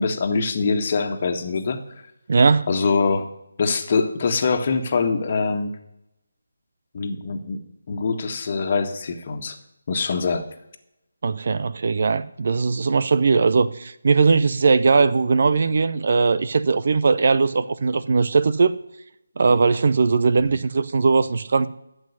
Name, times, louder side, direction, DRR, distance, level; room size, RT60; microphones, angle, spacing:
voice 1, 0.0-1.9 2.7-3.3 3.6-5.7 6.9-7.6 7.9-9.6 9.9-10.5 20.4-20.5, left 4 dB, 40° left, 1.6 m, -23 dB
voice 2, 2.3-2.7 11.2-18.7 19.4-21.7, right 4 dB, 50° right, 0.7 m, -19 dB
12.0 x 7.9 x 9.6 m
figure-of-eight pair, 155°, 0 cm